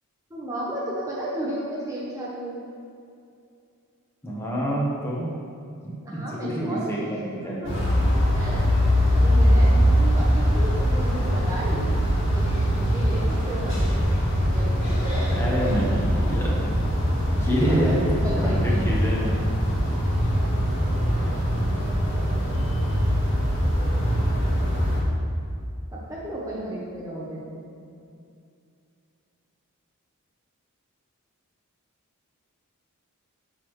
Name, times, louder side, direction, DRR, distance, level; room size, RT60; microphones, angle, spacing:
voice 1, 0.3-2.6 6.0-6.9 7.4-7.7 8.0-8.6 9.1-11.9 12.3-14.1 14.4-15.5 17.7-18.0 18.2-18.8 19.1-19.2 25.9-27.7, right 1 dB, 15° right, -6 dB, 0.8 m, -34 dB
voice 2, 4.2-5.4 5.8-7.8 15.3-16.7 17.3-19.3, equal, 10° left, -5 dB, 1.0 m, -27 dB
sound 1, 7.6-25.0, equal, 55° left, 1.5 m, -22 dB
6.7 x 6.0 x 3.1 m, 2.5 s
head